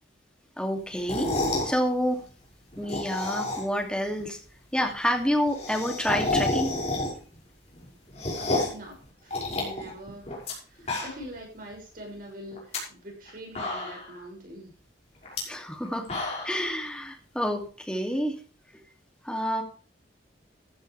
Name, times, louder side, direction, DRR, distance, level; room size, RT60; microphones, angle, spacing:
voice 1, 0.6-1.4 1.6-2.2 2.8-4.4 4.7-6.7 15.5-16.1 16.4-18.4 19.2-19.6, equal, 5° left, 2 dB, 2.6 m, -28 dB
sound 1, 0.9-1.7 2.7-3.8 4.2-4.3 4.5-4.6 4.8-4.9 5.1-7.4 7.7-8.8 9.3-10.5 10.8-11.4 11.7-11.8 12.5-12.8 13.3-13.4 13.5-14.2 15.2-15.4 15.8-16.6, left 2 dB, 35° left, 5.9 m, -30 dB
voice 2, 8.3-9.0 9.2-10.4 10.6-14.7, right 1 dB, 45° right, 0 dB, 6.6 m, -43 dB
15.0 x 10.5 x 3.4 m, 0.39 s
head